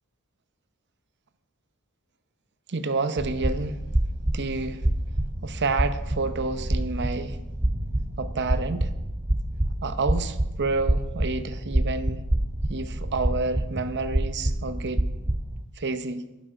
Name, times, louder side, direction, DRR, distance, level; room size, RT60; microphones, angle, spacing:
voice 1, 2.7-3.8 4.3-4.9 5.4-7.4 8.2-8.9 9.8-12.2 12.7-15.1 15.8-16.2, right 3 dB, 55° right, 0.8 m, -29 dB
sound 1, 3.2-15.6, right 1 dB, 20° right, 0.7 m, -27 dB
11.5 x 11.0 x 5.0 m
head